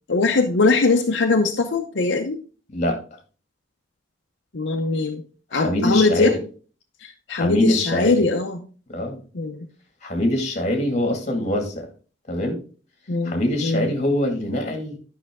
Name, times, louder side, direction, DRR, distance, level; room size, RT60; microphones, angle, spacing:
voice 1, 0.1-2.4 4.5-5.2 5.5-6.3 7.0-8.6 9.3-9.7 13.1-13.9, left 3 dB, 80° left, 4 dB, 0.7 m, -21 dB
voice 2, 5.5-6.4 7.3-8.2 8.9-9.2 10.0-11.9 12.3-12.6 13.2-15.0, left 1 dB, 40° left, 3 dB, 2.0 m, -23 dB
9.9 x 5.7 x 3.6 m, 0.38 s
head